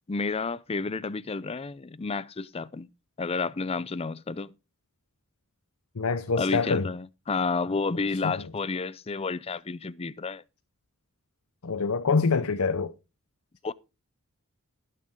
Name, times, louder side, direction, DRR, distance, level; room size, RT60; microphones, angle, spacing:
voice 1, 0.1-2.9 3.2-4.5 6.4-10.4 13.6-13.7, left 4 dB, 30° left, 0.5 m, -31 dB
voice 2, 6.0-6.9 8.2-8.4 11.6-12.9, left 4 dB, 80° left, 0.8 m, -25 dB
18.5 x 6.7 x 3.6 m
head